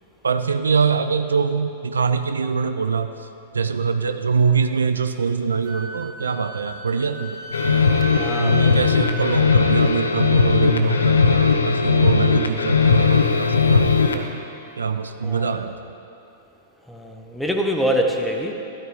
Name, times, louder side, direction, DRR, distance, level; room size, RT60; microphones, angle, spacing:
voice 1, 0.2-3.1 3.5-7.4 8.4-14.3 14.8-15.8, right 5 dB, 75° right, 9 dB, 0.5 m, -23 dB
Wind instrument woodwind instrument, 5.6-10.8, right 1 dB, 45° right, 2.1 m, -36 dB
sound 1, 7.5-14.3, left 5 dB, 75° left, 0.8 m, -18 dB
voice 2, 8.1-8.8 15.2-15.6 16.9-18.5, equal, 5° left, 2 dB, 1.2 m, -24 dB
12.5 x 12.0 x 3.8 m, 2.9 s
figure-of-eight pair, 100°, 0 cm